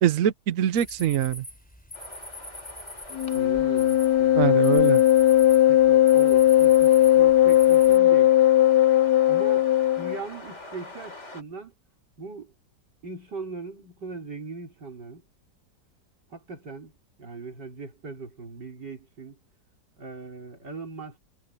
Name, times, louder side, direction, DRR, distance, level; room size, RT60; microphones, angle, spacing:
voice 1, 0.0-1.4 4.4-5.0, right 11 dB, 60° right, 1.0 m, -23 dB
sound 1, 0.7-8.0, equal, 5° left, 4.3 m, -43 dB
sound 2, 1.9-11.4, left 2 dB, 40° left, 4.6 m, -45 dB
Wind instrument woodwind instrument, 3.1-10.2, left 13 dB, 70° left, 1.2 m, -18 dB
voice 2, 3.3-4.7 5.7-8.3 9.3-9.7 10.0-11.7 12.2-12.5 13.0-15.2 16.3-16.9 17.2-19.4 20.0-21.2, right 4 dB, 80° right, 5.3 m, -39 dB
omnidirectional pair, 1.8 m